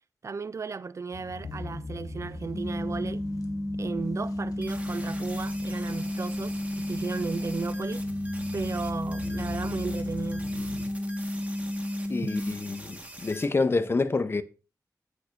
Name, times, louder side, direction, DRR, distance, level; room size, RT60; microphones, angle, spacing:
voice 1, 0.2-3.2 3.8-8.0 8.5-10.5 12.2-12.3, right 4 dB, 50° right, 0.4 m, -35 dB
sound 1, 1.1-10.9, left 3 dB, 70° left, 1.0 m, -42 dB
sound 2, 2.5-12.5, left 1 dB, 10° left, 3.2 m, -32 dB
sound 3, 4.6-13.5, right 1 dB, 20° right, 1.5 m, -45 dB
voice 2, 12.1-14.4, left 3 dB, 40° left, 0.7 m, -27 dB
16.5 x 6.3 x 2.6 m
wide cardioid pair, 110°, 6 cm